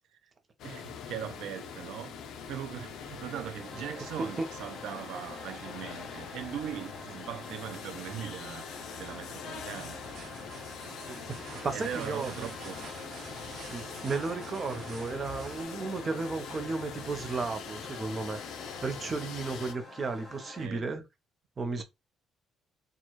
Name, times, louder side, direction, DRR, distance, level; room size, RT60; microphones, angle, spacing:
sound 1, 0.6-19.7, left 7 dB, 65° left, 0.5 m, -43 dB
voice 1, 0.6-10.3 11.4-12.8 15.9-16.0 20.6-20.9 21.8-21.9, right 10 dB, 75° right, 0.4 m, -40 dB
sound 2, 3.6-20.7, left 2 dB, 10° left, 1.5 m, -48 dB
sound 3, 9.7-15.6, right 3 dB, 60° right, 1.1 m, -48 dB
voice 2, 11.6-12.5 13.7-18.4 18.8-21.0 21.6-21.8, right 3 dB, 25° right, 0.7 m, -34 dB
4.3 x 2.3 x 3.0 m
cardioid pair, 160°, 0 cm